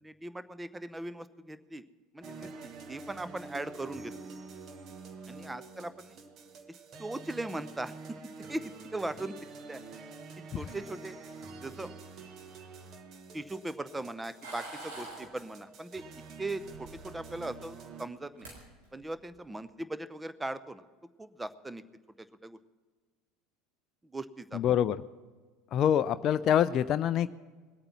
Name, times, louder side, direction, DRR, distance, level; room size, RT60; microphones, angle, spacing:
voice 1, 0.0-1.8 2.1-4.1 5.3-6.2 7.0-8.0 8.5-9.3 9.6-10.0 10.5-11.2 11.6-11.9 13.3-16.0 16.4-18.5 18.9-20.9 21.2-21.8 22.4-22.6 24.1-24.6, right 2 dB, 10° right, 14 dB, 0.7 m, -39 dB
sound 1, 2.2-18.1, right 4 dB, 45° right, 1.3 m, -47 dB
sound 2, 14.4-15.3 16.6-17.3 18.1-18.2 18.4-18.6 19.0-19.3, right 2 dB, 75° right, 3.8 m, -44 dB
voice 2, 24.5-25.0 25.7-27.3, left 9 dB, 45° left, 12 dB, 0.4 m, -25 dB
20.5 x 8.8 x 5.9 m, 1.4 s
figure-of-eight pair, 70°, 0 cm